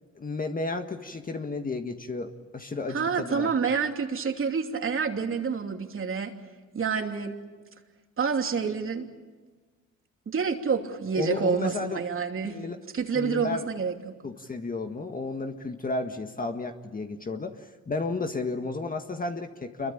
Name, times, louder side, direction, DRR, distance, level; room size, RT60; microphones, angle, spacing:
voice 1, 0.2-3.5 11.1-12.0 12.4-12.8 13.1-13.6 14.2-19.9, left 3 dB, 30° left, 5 dB, 1.7 m, -32 dB
voice 2, 2.9-6.3 6.7-7.3 8.2-9.1 10.3-12.6 12.9-14.2, right 6 dB, 45° right, 4 dB, 2.9 m, -28 dB
27.0 x 23.0 x 8.7 m, 1.4 s
cardioid pair, 90°, 30 cm